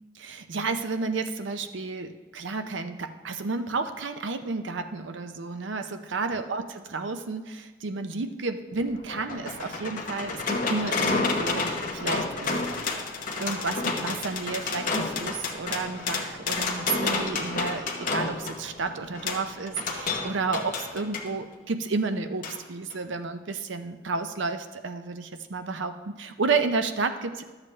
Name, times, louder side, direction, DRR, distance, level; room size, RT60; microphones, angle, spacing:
voice 1, 0.2-13.0 13.4-27.4, right 4 dB, 70° right, 8 dB, 0.6 m, -31 dB
sound 1, 8.7-21.3 22.4-22.6 22.9-23.0, left 3 dB, 40° left, 0.9 m, -30 dB
12.0 x 7.3 x 3.2 m, 1.3 s
head